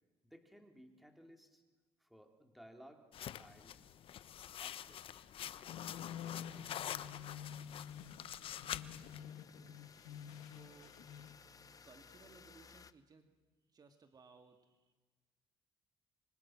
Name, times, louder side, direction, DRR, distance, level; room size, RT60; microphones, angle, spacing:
voice 1, 0.2-1.6 2.0-3.1 3.4-3.8 4.6-5.1, equal, ahead, 4 dB, 3.7 m, -59 dB
sound 1, 3.1-9.2, left 10 dB, 65° left, 1.0 m, -46 dB
sound 2, 5.7-11.4, left 9 dB, 90° left, 1.7 m, -49 dB
sound 3, 7.5-12.9, left 6 dB, 35° left, 1.0 m, -61 dB
voice 2, 10.4-11.0 11.8-13.3 13.7-14.9, right 5 dB, 40° right, 6 dB, 2.3 m, -62 dB
27.0 x 25.0 x 6.1 m, 1.3 s
cardioid pair, 95°, 10 cm